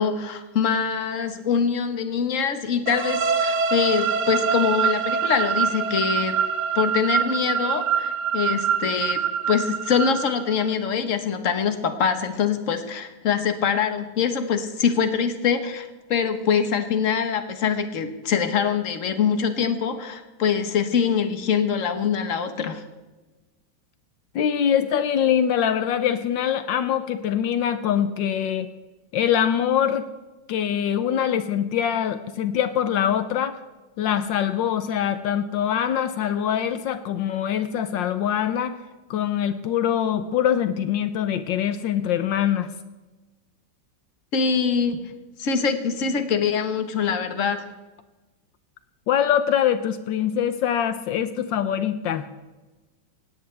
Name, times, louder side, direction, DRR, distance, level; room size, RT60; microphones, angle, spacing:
voice 1, 0.0-6.4 6.7-22.8 44.3-45.0 45.4-47.6, left 6 dB, 45° left, 8 dB, 1.5 m, -24 dB
sound 1, 2.9-10.7, right 7 dB, 65° right, 1.5 m, -25 dB
voice 2, 24.3-28.7 29.1-30.0 30.5-33.6 34.0-38.7 39.1-42.7 49.1-52.3, left 9 dB, 75° left, 11 dB, 1.4 m, -23 dB
18.5 x 17.5 x 3.4 m, 1.2 s
omnidirectional pair, 2.1 m